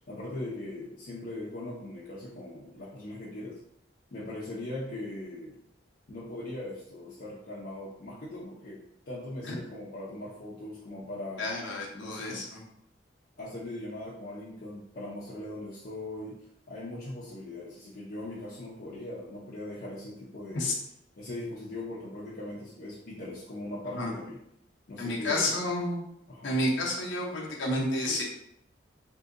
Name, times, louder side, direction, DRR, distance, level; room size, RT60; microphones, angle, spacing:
voice 1, 0.0-3.6 4.1-5.6 6.1-11.5 11.9-12.5 13.4-16.4 16.7-20.7 21.2-24.4 24.9-25.6 26.3-26.5, left 1 dB, 50° left, -7 dB, 0.6 m, -40 dB
voice 2, 11.4-12.6 20.5-20.7 23.9-24.1 25.0-26.0 26.4-28.2, left 1 dB, 85° left, -2 dB, 0.8 m, -30 dB
3.7 x 2.7 x 2.5 m, 0.74 s
head